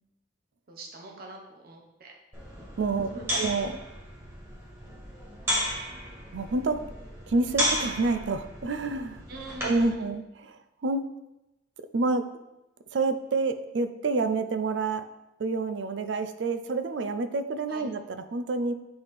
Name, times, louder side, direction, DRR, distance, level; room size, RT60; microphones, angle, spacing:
voice 1, 0.7-2.1 2.9-3.5 9.3-10.2 17.7-17.8, right 2 dB, 50° right, 1 dB, 0.9 m, -43 dB
sound 1, 2.3-9.9, equal, 15° right, 1.7 m, -34 dB
voice 2, 2.8-3.7 6.3-6.8 7.3-9.2 9.6-10.5 10.8-11.1 11.8-12.3 12.9-15.1 15.4-18.7, right 3 dB, 75° right, 10 dB, 0.4 m, -28 dB
7.7 x 3.4 x 4.2 m, 0.95 s
head